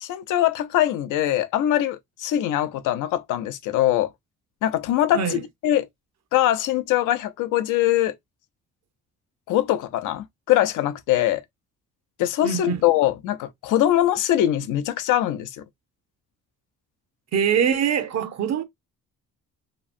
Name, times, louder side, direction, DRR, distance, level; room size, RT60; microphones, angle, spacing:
voice 1, 0.0-4.1 4.6-5.4 5.6-5.9 6.3-8.2 9.5-11.4 12.2-15.6, left 12 dB, 85° left, 0.5 m, -22 dB
voice 2, 12.4-12.8 17.3-18.6, right 8 dB, 60° right, 0.7 m, -23 dB
2.9 x 2.5 x 2.5 m
cardioid pair, 90°, 30 cm